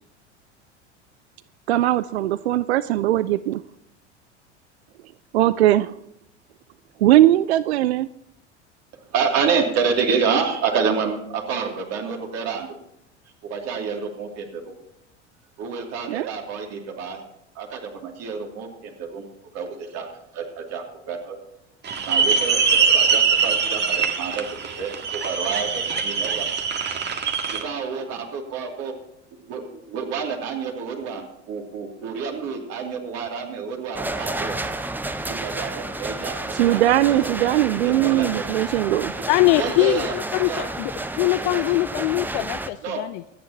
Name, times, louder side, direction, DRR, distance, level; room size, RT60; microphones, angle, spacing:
voice 1, 1.7-3.6 5.3-5.9 7.0-8.1 16.1-16.3 36.5-39.1, right 14 dB, 65° right, 17 dB, 0.5 m, -19 dB
voice 2, 9.1-12.8 13.4-14.7 15.6-17.2 17.5-19.3 19.5-21.4 22.0-26.5 27.5-28.9 29.3-34.6 35.2-36.8 37.1-38.4 39.2-39.3 39.6-40.1 40.5-40.7 41.5-41.6 42.8-43.1, right 5 dB, 45° right, 1 dB, 2.8 m, -28 dB
sound 1, 21.8-27.6, right 5 dB, 30° right, 1.7 m, -22 dB
sound 2, 33.9-42.7, right 2 dB, 5° right, 0.7 m, -31 dB
voice 3, 39.3-40.9 41.2-43.2, left 18 dB, 40° left, 12 dB, 0.4 m, -22 dB
24.5 x 9.7 x 2.9 m, 0.79 s
figure-of-eight pair, 75°, 36 cm